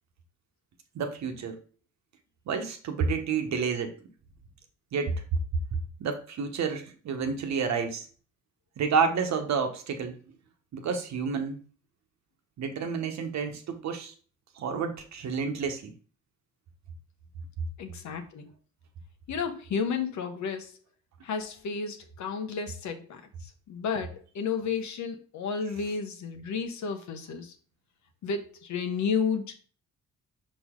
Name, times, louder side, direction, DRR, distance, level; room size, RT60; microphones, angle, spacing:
voice 1, 0.9-1.6 2.5-3.9 4.9-5.2 6.0-8.1 8.8-10.2 10.7-11.6 12.6-14.1 14.6-15.9, right 5 dB, 65° right, 6 dB, 1.1 m, -30 dB
voice 2, 17.8-18.5 19.3-20.7 21.2-23.2 23.7-27.5 28.2-29.5, left 6 dB, 70° left, 6 dB, 1.1 m, -32 dB
5.5 x 5.0 x 3.7 m, 0.40 s
cardioid pair, 90°, 30 cm